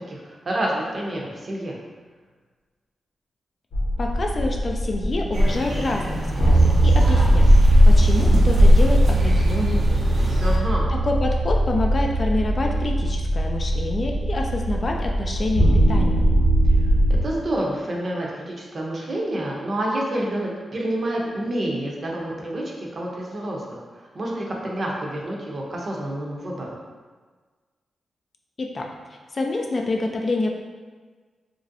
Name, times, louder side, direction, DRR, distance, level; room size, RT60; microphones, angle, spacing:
voice 1, 0.1-1.7 10.4-10.9 17.2-23.8 24.1-26.8, right 1 dB, 45° right, -2 dB, 0.6 m, -28 dB
sound 1, 3.7-17.2, right 1 dB, 80° left, 0.8 m, -20 dB
voice 2, 4.0-10.0 10.4-10.6 10.9-16.2 28.6-28.9 29.3-30.5, left 2 dB, 40° left, 1 dB, 0.4 m, -27 dB
sound 2, 5.3-10.6, left 1 dB, 85° right, 0.6 m, -20 dB
3.0 x 2.6 x 2.6 m, 1.4 s
cardioid pair, 90°, 0 cm